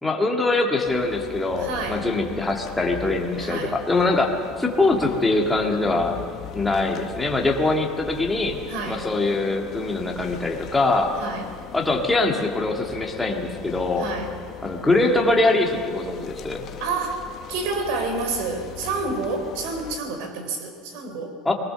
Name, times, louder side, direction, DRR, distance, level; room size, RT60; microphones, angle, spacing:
voice 1, 0.0-6.2 6.5-8.6 8.9-11.1 11.7-14.1 14.6-16.7 21.5-21.6, left 2 dB, 5° left, 0 dB, 1.9 m, -23 dB
sound 1, 0.8-20.0, left 9 dB, 35° left, 1.1 m, -40 dB
voice 2, 1.6-2.0 3.4-3.8 8.7-9.1 11.2-11.4 14.0-14.4 16.8-21.4, right 3 dB, 65° right, 6 dB, 3.9 m, -29 dB
20.5 x 19.5 x 6.9 m, 2.3 s
cardioid pair, 170°, 0 cm